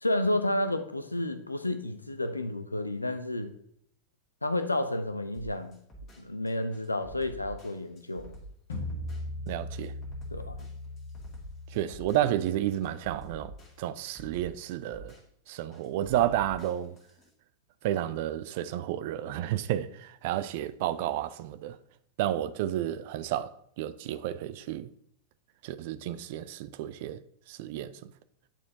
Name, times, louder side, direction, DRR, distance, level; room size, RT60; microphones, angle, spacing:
voice 1, 0.0-3.5 4.4-5.8 6.2-8.3 10.3-10.6, left 1 dB, 85° left, 0.5 m, -31 dB
sound 1, 5.3-17.3, right 1 dB, 30° left, 1.9 m, -49 dB
sound 2, 8.7-13.7, left 2 dB, 65° left, 1.3 m, -40 dB
voice 2, 9.5-9.9 11.7-13.5 13.8-15.1 15.5-17.0 17.8-21.8 22.2-24.9 25.6-27.2 27.5-28.1, right 12 dB, 50° right, 0.4 m, -31 dB
9.0 x 4.3 x 2.7 m
figure-of-eight pair, 90°, 0 cm